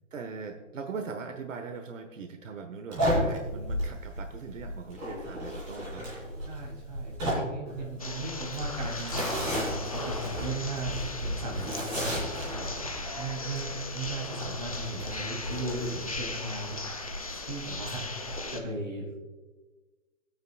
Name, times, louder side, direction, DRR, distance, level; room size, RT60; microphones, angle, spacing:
voice 1, 0.1-6.0, right 5 dB, 75° right, 5 dB, 1.3 m, -40 dB
sound 1, 2.9-18.5, equal, 10° right, 2.8 m, -34 dB
voice 2, 6.4-11.8 12.1-16.8 17.4-19.2, right 2 dB, 35° right, -2 dB, 2.9 m, -37 dB
sound 2, 8.0-18.6, left 3 dB, 30° left, 0.5 m, -38 dB
19.0 x 9.3 x 2.3 m, 1.2 s
hypercardioid pair, 180°, 38 cm